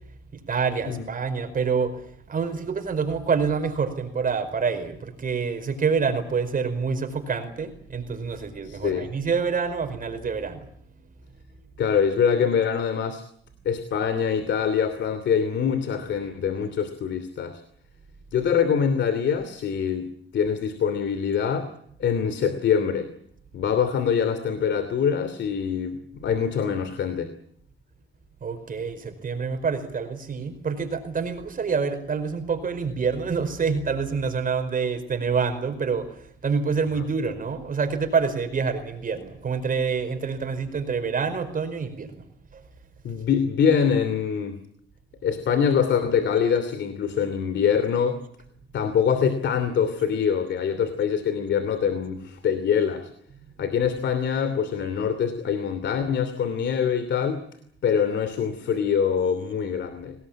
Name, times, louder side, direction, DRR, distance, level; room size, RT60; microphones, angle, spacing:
voice 1, 0.3-2.0 2.3-10.6 28.4-42.2 42.5-42.6, right 5 dB, 45° right, 7 dB, 4.9 m, -27 dB
voice 2, 8.6-9.1 11.8-13.2 13.6-17.6 18.3-20.1 20.3-21.7 22.0-23.1 23.5-27.3 37.0-37.1 43.0-44.6 45.2-48.2 48.7-53.1 53.6-57.4 57.8-60.1, left 7 dB, 65° left, 11 dB, 2.9 m, -24 dB
25.5 x 19.0 x 8.8 m, 0.66 s
cardioid pair, 90°, 20 cm